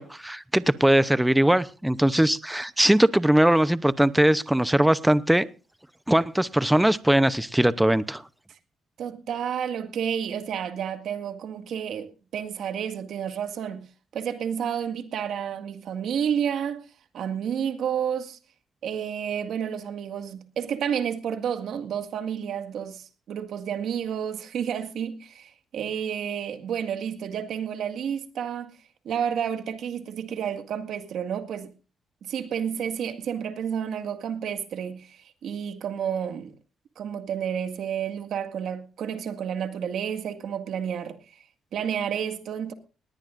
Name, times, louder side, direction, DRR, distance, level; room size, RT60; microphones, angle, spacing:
voice 1, 0.0-5.5 6.1-8.2, right 1 dB, 5° right, 0.7 m, -20 dB
voice 2, 9.0-13.9 14.1-16.8 17.1-18.4 18.8-28.7 29.1-31.7 32.2-36.5 37.0-41.4 41.7-42.7, right 8 dB, 70° right, 1.9 m, -30 dB
19.5 x 18.0 x 2.6 m
cardioid pair, 90°, 0 cm